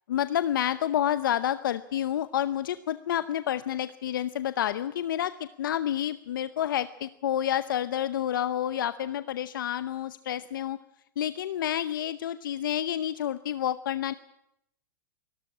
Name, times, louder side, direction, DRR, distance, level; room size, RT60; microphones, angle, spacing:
voice 1, 0.1-10.8 11.2-14.1, left 11 dB, 85° left, 14 dB, 0.8 m, -29 dB
23.5 x 13.5 x 9.9 m, 0.80 s
supercardioid pair, 150°, 11 cm